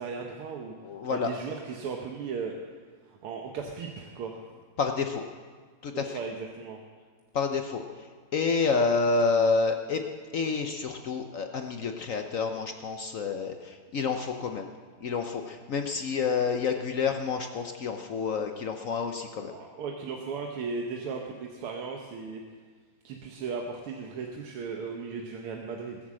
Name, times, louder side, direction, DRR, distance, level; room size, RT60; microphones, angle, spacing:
voice 1, 0.0-0.7 1.1-2.6 3.1-4.4 5.9-6.8 19.5-22.4 23.0-26.0, right 5 dB, 90° right, 1 dB, 2.0 m, -36 dB
voice 2, 0.8-1.3 4.8-5.2 5.8-6.2 7.3-10.0 10.3-14.7 15.0-19.5, left 4 dB, 70° left, 5 dB, 0.7 m, -29 dB
19.5 x 7.5 x 7.5 m, 1.5 s
omnidirectional pair, 2.4 m